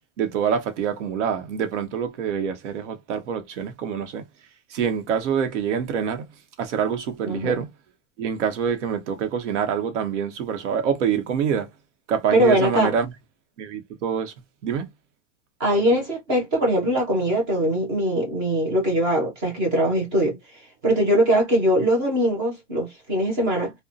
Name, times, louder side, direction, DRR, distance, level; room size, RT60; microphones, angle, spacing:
voice 1, 0.2-4.2 4.7-6.3 6.6-7.7 8.2-11.7 12.1-13.1 13.6-14.3 14.6-14.9, right 7 dB, 75° right, 0.9 m, -26 dB
voice 2, 7.2-7.6 12.3-12.9 15.6-20.4 20.8-23.7, right 1 dB, 10° right, 0.3 m, -21 dB
2.6 x 2.1 x 2.4 m
supercardioid pair, 170°, 36 cm